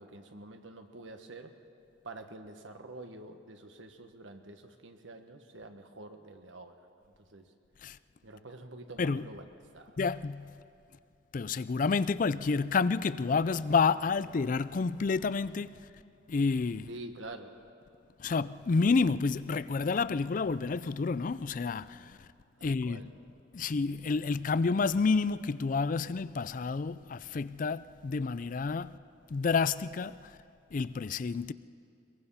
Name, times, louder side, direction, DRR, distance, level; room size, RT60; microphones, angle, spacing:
voice 1, 0.0-1.5 2.0-6.9 7.3-7.5 8.2-9.4 9.7-10.0 16.8-17.6 22.6-23.1, right 2 dB, 85° right, 1.5 m, -47 dB
voice 2, 10.0-10.6 11.3-15.8 16.3-16.9 18.2-22.2 22.6-23.0 23.5-29.0 29.3-30.4 30.7-31.5, left 4 dB, 45° left, 0.4 m, -29 dB
22.0 x 22.0 x 5.7 m
head